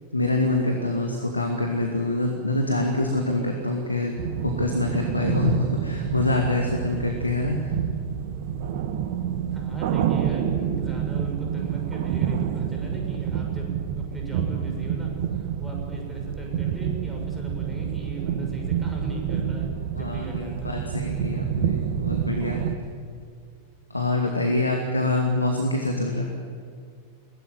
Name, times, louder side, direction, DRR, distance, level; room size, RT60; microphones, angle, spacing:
voice 1, 0.1-4.1 4.4-7.6 20.0-22.6 23.9-26.3, left 2 dB, 85° left, 2 dB, 2.4 m, -25 dB
sound 1, 4.2-22.8, right 8 dB, 50° right, 1.6 m, -28 dB
voice 2, 9.5-13.7 14.0-20.8, right 2 dB, 10° right, 0 dB, 6.6 m, -38 dB
22.0 x 17.5 x 9.6 m, 2.1 s
figure-of-eight pair, 90°, 0 cm